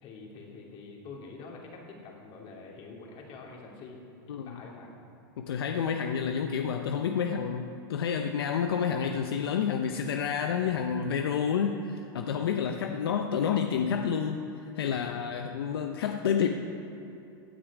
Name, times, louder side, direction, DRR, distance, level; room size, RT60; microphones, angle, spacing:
voice 1, 0.0-4.0 4.3-4.9, left 4 dB, 45° left, -1 dB, 2.9 m, -46 dB
voice 2, 4.3-4.6 5.4-14.5 14.7-16.5, left 7 dB, 85° left, 5 dB, 0.7 m, -29 dB
16.5 x 9.0 x 4.9 m, 2.8 s
hypercardioid pair, 110°, 12 cm